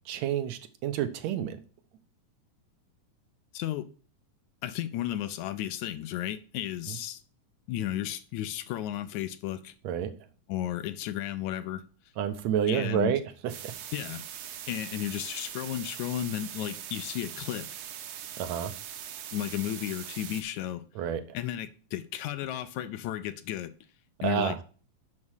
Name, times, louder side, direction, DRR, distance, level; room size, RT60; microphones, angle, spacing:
voice 1, 0.1-1.6 6.9-7.0 9.8-10.1 12.2-13.7 18.4-18.7 21.0-21.2 24.2-24.6, right 9 dB, 70° right, 2.0 m, -29 dB
voice 2, 3.5-3.9 4.6-7.2 7.7-9.7 10.5-11.8 12.7-13.1 13.9-14.3 14.7-17.7 19.3-20.8 21.3-23.7 24.2-24.6, left 12 dB, 80° left, 2.0 m, -33 dB
sound 1, 13.5-20.4, right 10 dB, 85° right, 2.5 m, -41 dB
7.4 x 6.0 x 6.3 m
omnidirectional pair, 3.5 m